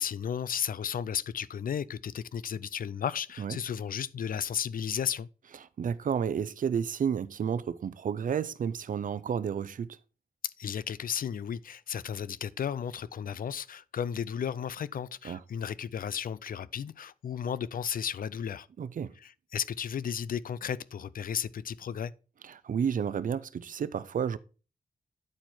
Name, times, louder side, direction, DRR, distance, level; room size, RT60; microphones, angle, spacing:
voice 1, 0.0-5.3 10.6-18.7 19.2-22.1, left 8 dB, 70° left, 0.5 m, -34 dB
voice 2, 5.8-10.0 15.2-15.4 18.8-19.1 22.4-24.4, right 7 dB, 60° right, 0.5 m, -31 dB
9.8 x 4.4 x 4.4 m
wide cardioid pair, 85°, 15 cm